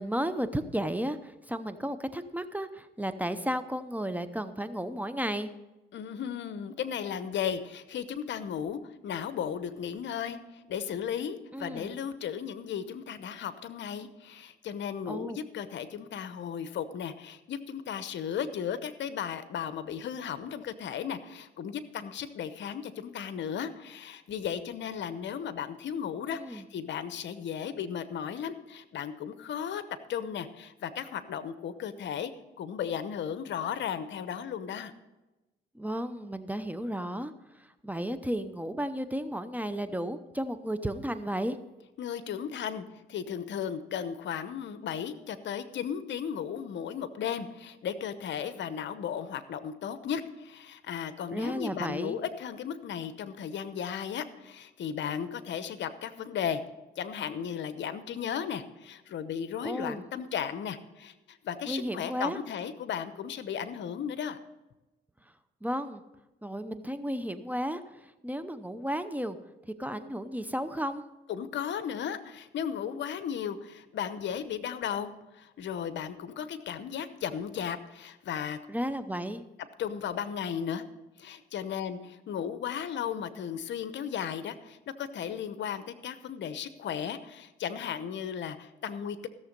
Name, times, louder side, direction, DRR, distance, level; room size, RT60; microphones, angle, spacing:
voice 1, 0.0-5.5 11.5-11.9 15.1-15.4 26.3-26.6 35.7-37.3 37.6-41.6 51.3-52.2 59.6-60.0 61.7-62.4 65.6-66.0 66.4-69.4 69.8-71.0 78.7-79.4, equal, 10° right, 11 dB, 0.7 m, -33 dB
voice 2, 5.9-29.8 30.1-32.3 32.6-34.9 42.0-56.6 57.0-64.4 71.3-78.6 79.8-80.8 81.2-89.3, left 8 dB, 65° left, 12 dB, 0.9 m, -35 dB
15.5 x 7.2 x 5.3 m, 1.0 s
cardioid pair, 90°, 20 cm